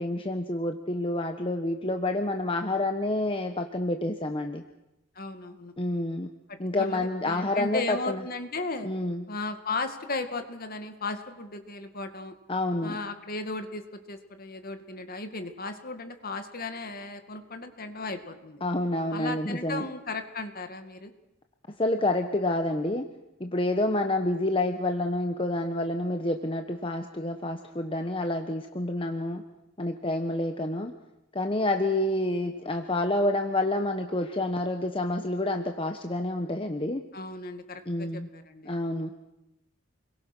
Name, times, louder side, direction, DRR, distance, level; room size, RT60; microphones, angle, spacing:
voice 1, 0.0-4.6 5.8-6.3 6.6-8.2 8.8-9.2 12.5-13.0 18.6-19.9 21.8-23.1 23.4-29.4 29.8-30.9 31.3-37.0 37.9-38.3 38.6-39.1, left 1 dB, 25° left, 5 dB, 1.2 m, -28 dB
voice 2, 5.2-5.7 6.8-8.9 9.3-12.3 12.8-18.6 19.1-21.1 37.1-38.8, left 3 dB, 45° left, 7 dB, 2.2 m, -36 dB
29.5 x 22.5 x 6.2 m, 0.92 s
head